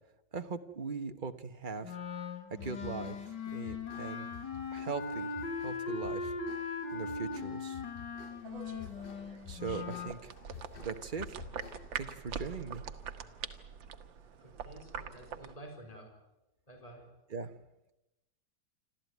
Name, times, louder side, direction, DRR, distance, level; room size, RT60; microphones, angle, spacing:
voice 1, 0.3-2.0 2.5-3.2 3.5-4.3 4.7-6.3 6.9-7.8 9.5-10.3 10.8-11.4 11.9-12.8 17.3-17.5, right 5 dB, 30° right, 8 dB, 1.1 m, -40 dB
Wind instrument woodwind instrument, 1.8-10.2, left 4 dB, 70° left, 2.4 m, -39 dB
sound 1, 2.5-12.1, left 8 dB, 40° left, 0.9 m, -51 dB
sound 2, 8.4-15.6, right 7 dB, 90° right, 1.9 m, -44 dB
voice 2, 14.4-16.1 16.7-17.1, right 1 dB, 20° left, 2 dB, 4.4 m, -51 dB
27.5 x 13.5 x 9.4 m, 0.95 s
omnidirectional pair, 2.0 m